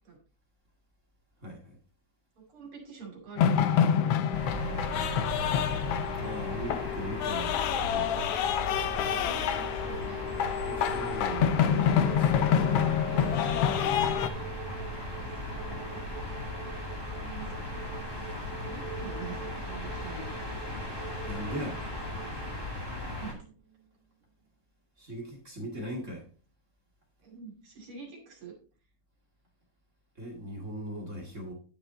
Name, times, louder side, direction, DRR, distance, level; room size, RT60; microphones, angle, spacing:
voice 1, 1.4-1.8 6.2-8.3 10.6-13.3 21.3-21.8 25.0-26.3 30.2-31.5, right 1 dB, 30° right, -1 dB, 1.9 m, -39 dB
voice 2, 2.4-3.6 4.0-4.4 9.1-10.3 11.0-11.9 14.6-14.8 15.2-15.6 16.8-18.1 18.6-21.0 22.9-23.4 27.2-28.5, right 4 dB, 45° right, 1 dB, 3.2 m, -46 dB
sound 1, 3.4-14.3, left 9 dB, 85° left, 1.3 m, -27 dB
sound 2, 4.3-23.3, left 1 dB, 10° left, 1.3 m, -37 dB
sound 3, 7.1-24.1, right 8 dB, 80° right, 2.5 m, -46 dB
10.5 x 6.9 x 3.8 m, 0.39 s
omnidirectional pair, 3.5 m